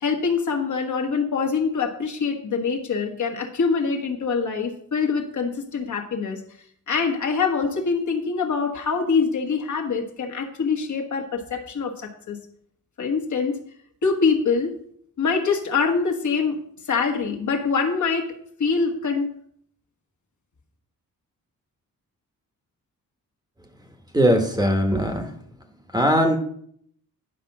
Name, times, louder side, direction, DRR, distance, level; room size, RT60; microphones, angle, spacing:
voice 1, 0.0-6.4 6.9-12.4 13.0-13.6 14.0-14.7 15.2-16.6 16.9-18.3 18.6-19.3, left 5 dB, 55° left, 1 dB, 1.4 m, -24 dB
voice 2, 24.1-25.3 25.9-26.4, equal, 10° right, 4 dB, 1.1 m, -20 dB
10.0 x 5.0 x 6.0 m, 0.64 s
wide cardioid pair, 145°, 35 cm